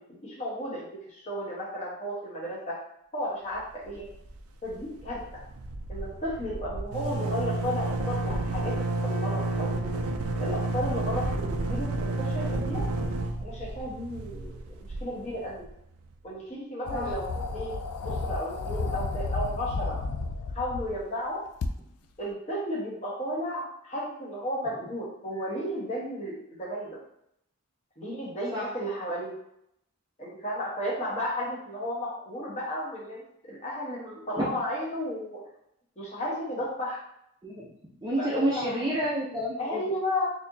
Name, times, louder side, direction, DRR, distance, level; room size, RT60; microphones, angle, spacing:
voice 1, 0.1-2.8 3.1-4.1 4.6-5.4 5.9-10.0 10.4-12.8 13.4-15.6 16.2-17.7 18.0-20.0 20.5-21.4 22.2-27.0 28.0-29.3 30.2-35.4 36.0-37.0 38.2-38.9 39.6-40.2, equal, 30° left, -6 dB, 1.1 m, -33 dB
sound 1, 3.8-4.4 4.7-4.8 5.0-15.7, right 2 dB, 75° right, 0.4 m, -31 dB
sound 2, 16.9-21.0 21.6-21.7, left 3 dB, 85° left, 0.4 m, -32 dB
voice 2, 37.4-37.7 38.0-39.8, equal, 20° right, -6 dB, 0.5 m, -29 dB
4.2 x 2.9 x 2.7 m, 0.74 s
head